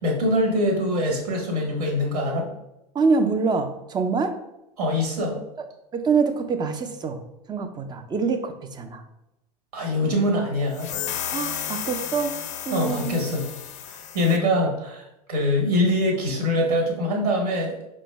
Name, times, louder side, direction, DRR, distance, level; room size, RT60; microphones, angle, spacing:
voice 1, 0.0-2.5 4.8-5.3 9.7-10.9 12.7-13.5 13.9-17.8, left 1 dB, 70° right, 1 dB, 1.3 m, -23 dB
voice 2, 2.9-4.3 5.6-5.7 5.9-7.2 7.5-9.0 11.3-12.3 12.7-13.2, right 4 dB, 20° right, 8 dB, 0.5 m, -25 dB
sound 1, 10.7-14.4, left 9 dB, 35° left, 0.4 m, -33 dB
5.0 x 2.1 x 3.3 m, 0.90 s
hypercardioid pair, 90°, 20 cm